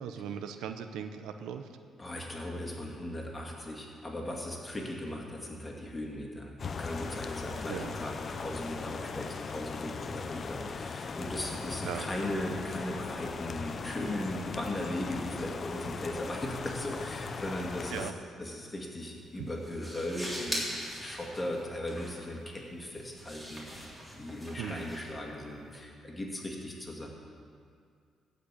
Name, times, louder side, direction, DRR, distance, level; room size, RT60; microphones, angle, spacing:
voice 1, 0.0-1.8 7.7-8.0 11.8-12.1 17.9-18.1 19.4-19.5 24.6-24.9, right 8 dB, 90° right, 8 dB, 0.7 m, -38 dB
voice 2, 2.0-18.1 18.4-20.6 20.9-27.1, left 1 dB, 20° left, -1 dB, 2.4 m, -38 dB
sound 1, 6.6-18.1, left 5 dB, 45° left, 0.6 m, -39 dB
sound 2, 18.9-25.8, equal, 5° right, 3.6 m, -42 dB
15.0 x 5.3 x 8.3 m, 2.2 s
cardioid pair, 90°, 0 cm